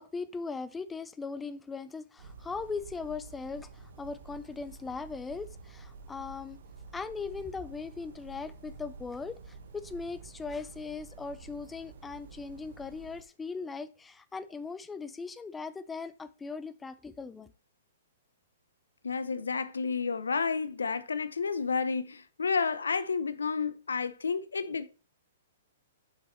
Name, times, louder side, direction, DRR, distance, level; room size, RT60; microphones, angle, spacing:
voice 1, 0.0-6.6 6.9-17.5, left 4 dB, 10° left, 0.5 m, -39 dB
sound 1, 2.2-13.2, right 4 dB, 65° right, 1.4 m, -49 dB
voice 2, 19.0-24.9, left 5 dB, 85° left, 0.7 m, -31 dB
8.1 x 6.0 x 3.1 m
hypercardioid pair, 120°, 0 cm